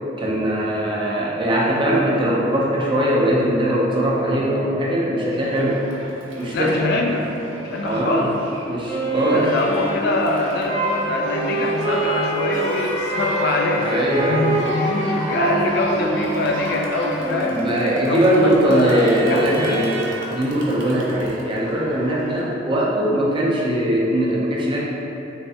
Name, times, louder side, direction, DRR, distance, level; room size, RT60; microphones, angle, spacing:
voice 1, 0.2-5.8 6.4-6.9 7.8-8.3 8.6-9.5 13.8-14.6 17.5-20.0 20.3-24.8, right 1 dB, 25° right, -5 dB, 0.5 m, -20 dB
Crowd, 5.3-22.4, right 1 dB, 75° right, 0.6 m, -35 dB
voice 2, 6.5-7.2 7.6-8.4 9.3-13.9 14.2-17.6 18.0-19.9, left 2 dB, 55° left, 1 dB, 0.3 m, -24 dB
Wind instrument woodwind instrument, 8.9-17.8, right 2 dB, 80° left, 1.1 m, -26 dB
3.2 x 3.2 x 2.7 m, 3.0 s
head